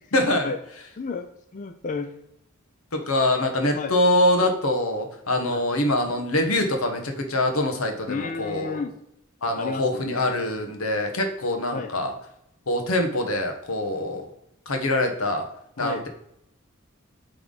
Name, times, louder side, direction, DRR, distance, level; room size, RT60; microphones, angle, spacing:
voice 1, 0.1-0.5 2.9-8.8 9.4-12.1 12.7-14.3 14.7-15.5 15.8-16.1, left 1 dB, 85° left, 4 dB, 1.2 m, -24 dB
voice 2, 1.0-2.1 3.7-3.9 5.5-5.6 8.1-9.0 9.6-10.5 11.7-11.9 15.8-16.0, left 4 dB, 40° left, 6 dB, 0.4 m, -32 dB
8.8 x 3.5 x 3.9 m, 0.78 s
head